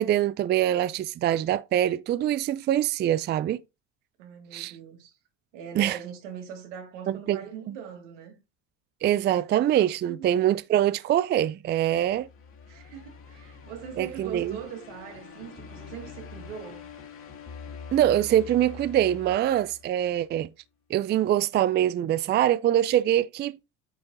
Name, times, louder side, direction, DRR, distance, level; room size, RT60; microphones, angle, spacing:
voice 1, 0.0-3.6 4.5-4.7 5.7-6.0 7.1-7.4 7.7-7.8 9.0-12.3 14.0-14.6 17.9-20.5 20.9-23.5, right 11 dB, 30° right, 0.4 m, -24 dB
voice 2, 4.2-5.2 5.5-8.4 10.0-10.3 12.7-16.9, right 8 dB, 90° right, 2.3 m, -41 dB
sound 1, 12.0-20.3, left 6 dB, 35° left, 2.2 m, -45 dB
9.0 x 3.6 x 4.1 m
supercardioid pair, 100°, 35 cm